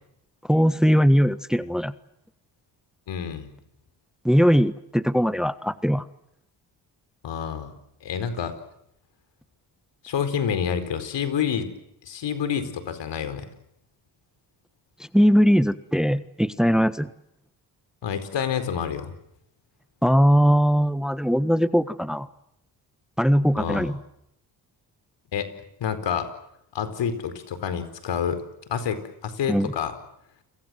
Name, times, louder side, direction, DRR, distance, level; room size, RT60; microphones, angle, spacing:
voice 1, 0.4-1.9 4.2-6.1 15.1-17.1 20.0-22.3 23.2-23.9 29.5-29.7, equal, ahead, 13 dB, 1.4 m, -20 dB
voice 2, 3.1-3.5 7.2-7.7 8.0-8.5 10.0-11.7 12.0-13.5 18.0-19.1 23.6-23.9 25.3-25.5 25.8-26.3 26.7-28.4 28.7-29.9, left 8 dB, 80° left, 11 dB, 4.6 m, -28 dB
29.5 x 23.0 x 7.8 m, 0.77 s
cardioid pair, 70°, 43 cm